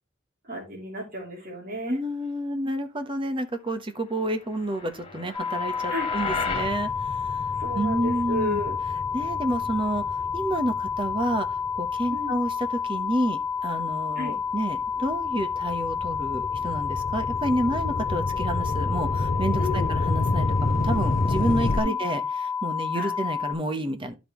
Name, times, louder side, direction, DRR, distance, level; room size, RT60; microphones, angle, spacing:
voice 1, 0.4-2.0 5.9-6.1 7.6-8.8 12.1-12.4 14.2-14.3 19.6-19.9 21.8-22.0 22.9-23.1, left 1 dB, 50° right, 3.1 m, -33 dB
voice 2, 1.9-7.4 7.7-8.6 9.1-24.2, right 1 dB, 25° right, 1.1 m, -29 dB
sound 1, 4.5-6.8, left 4 dB, 30° left, 2.4 m, -33 dB
sound 2, 5.3-23.5, left 6 dB, 5° left, 2.6 m, -30 dB
sound 3, 6.5-13.2 13.8-21.8, left 2 dB, 45° left, 0.7 m, -30 dB
12.0 x 5.2 x 3.1 m
head